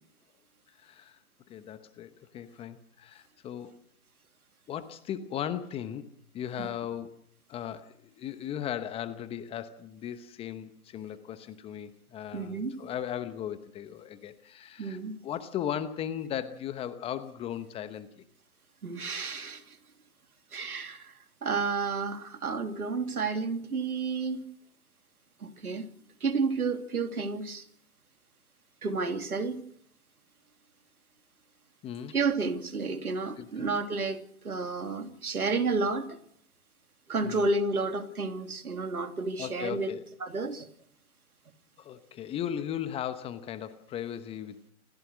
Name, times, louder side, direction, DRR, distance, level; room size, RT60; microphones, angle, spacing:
voice 1, 0.8-1.2 1.5-3.8 4.7-6.1 6.3-7.2 7.5-18.2 31.8-32.1 33.4-33.7 37.2-37.5 39.4-40.1 41.8-44.6, left 10 dB, 15° left, 0.9 m, -37 dB
voice 2, 12.3-12.8 14.8-15.2 18.8-19.6 20.5-21.1 21.4-24.5 25.4-25.9 26.2-27.7 28.8-29.6 32.1-36.2 37.1-39.9 40.2-40.7, right 4 dB, 85° right, 2.9 m, -31 dB
28.0 x 16.0 x 6.2 m
hypercardioid pair, 135°, 44 cm